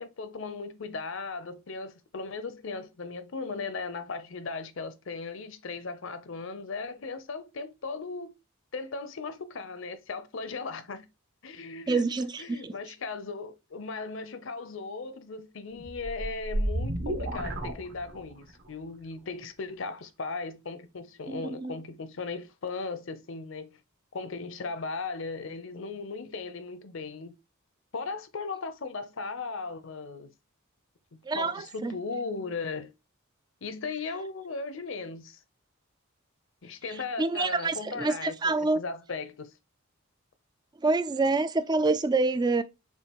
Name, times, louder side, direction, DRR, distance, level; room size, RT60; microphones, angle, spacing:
voice 1, 0.0-8.3 8.7-11.1 11.4-12.1 12.4-23.8 24.1-27.4 27.9-30.3 31.1-32.9 33.6-35.4 36.6-39.5, left 4 dB, 65° left, 0.6 m, -37 dB
voice 2, 11.9-12.7 21.3-21.8 31.3-32.0 37.2-38.8 40.8-42.6, right 3 dB, 20° right, 0.3 m, -27 dB
sound 1, 15.8-18.5, right 1 dB, 55° right, 1.1 m, -32 dB
6.8 x 2.5 x 2.9 m
head